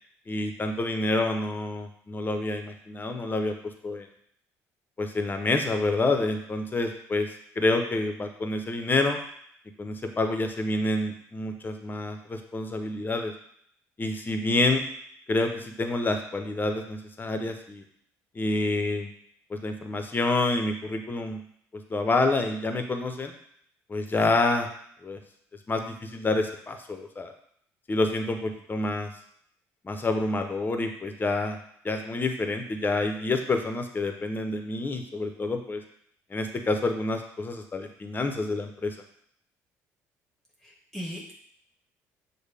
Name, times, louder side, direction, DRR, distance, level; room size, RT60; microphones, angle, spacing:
voice 1, 0.3-3.5 3.8-4.1 5.0-7.3 7.6-9.2 9.8-13.3 14.0-14.8 15.3-17.8 18.3-19.1 19.5-21.4 21.9-23.3 23.9-24.7 25.0-25.2 25.7-27.3 27.9-29.1 29.8-31.6 31.8-35.8 36.3-39.0, left 2 dB, 25° left, 5 dB, 0.7 m, -28 dB
voice 2, 40.6-41.3, equal, 5° left, -3 dB, 1.1 m, -38 dB
6.4 x 2.2 x 3.4 m, 0.66 s
supercardioid pair, 70°, 7 cm